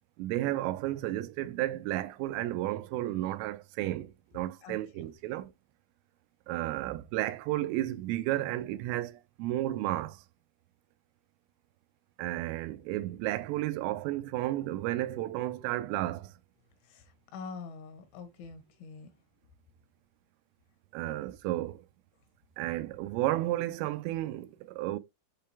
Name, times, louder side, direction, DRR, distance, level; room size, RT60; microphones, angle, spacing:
voice 1, 0.2-5.5 6.5-10.2 12.2-16.3 20.9-21.8 22.6-25.0, right 15 dB, 90° right, 3.3 m, -32 dB
voice 2, 4.6-5.1 5.4-5.5 16.8-19.1 21.0-21.2, left 5 dB, 75° left, 3.3 m, -46 dB
8.2 x 3.4 x 3.4 m
omnidirectional pair, 5.8 m